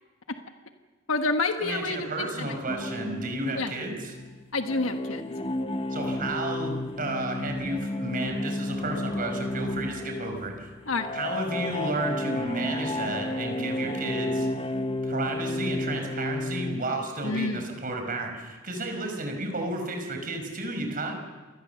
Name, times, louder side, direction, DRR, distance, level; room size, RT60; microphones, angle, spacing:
voice 1, 1.1-2.5 3.5-3.7 4.5-5.3 10.9-11.1 17.2-17.6, left 3 dB, 90° left, 6 dB, 1.3 m, -28 dB
voice 2, 1.6-4.1 5.9-10.7 11.1-14.5 15.0-21.1, right 2 dB, 45° right, 4 dB, 5.4 m, -32 dB
sound 1, 2.7-16.8, left 2 dB, 30° left, 1.0 m, -32 dB
28.0 x 20.5 x 7.0 m, 1.3 s
head